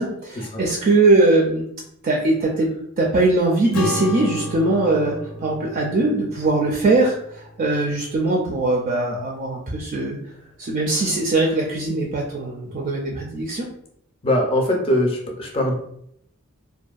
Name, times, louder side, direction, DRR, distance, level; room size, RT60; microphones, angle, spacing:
voice 1, 0.0-1.7 2.0-2.7 3.0-10.2 10.6-13.7, right 2 dB, 40° right, -1 dB, 0.3 m, -21 dB
Acoustic guitar / Strum, 3.7-8.5, left 2 dB, 80° left, 0.5 m, -33 dB
voice 2, 14.2-15.7, left 1 dB, 25° left, 1 dB, 0.5 m, -21 dB
2.5 x 2.1 x 2.3 m, 0.70 s
head